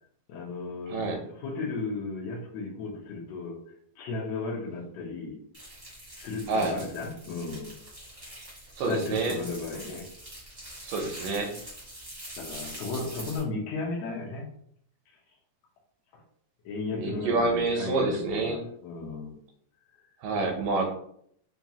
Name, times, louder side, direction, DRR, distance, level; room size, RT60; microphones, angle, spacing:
voice 1, 0.3-3.6 4.0-5.4 6.1-7.8 8.8-10.1 12.4-14.5 16.1-16.2 16.6-19.4, left 3 dB, 90° left, -2 dB, 1.5 m, -35 dB
sound 1, 5.5-13.4, right 1 dB, 50° right, 0.5 m, -44 dB
voice 2, 8.8-9.4 10.8-11.5 16.9-18.6 20.2-20.9, right 3 dB, 80° right, 3 dB, 2.3 m, -27 dB
5.6 x 2.3 x 2.8 m, 0.67 s
omnidirectional pair, 3.9 m